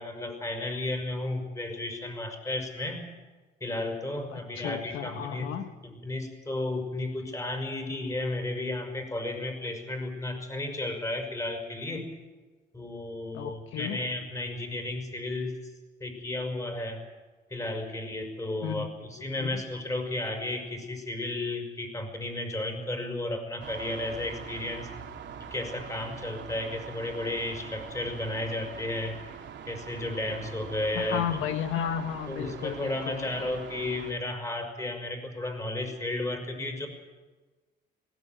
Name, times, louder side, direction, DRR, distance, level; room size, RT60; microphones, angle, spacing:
voice 1, 0.0-3.1 3.6-5.5 5.8-12.1 12.7-15.5 16.0-17.0 17.5-24.9 25.5-29.2 29.7-31.3 32.3-36.9, left 2 dB, 15° left, 5 dB, 6.0 m, -33 dB
voice 2, 4.3-5.7 13.3-14.0 18.6-18.9 19.4-19.6 30.9-33.5, left 9 dB, 90° left, 8 dB, 1.4 m, -33 dB
sound 1, 23.6-34.1, right 7 dB, 65° right, 2.7 m, -43 dB
20.5 x 17.5 x 9.3 m, 1.3 s
cardioid pair, 90°, 20 cm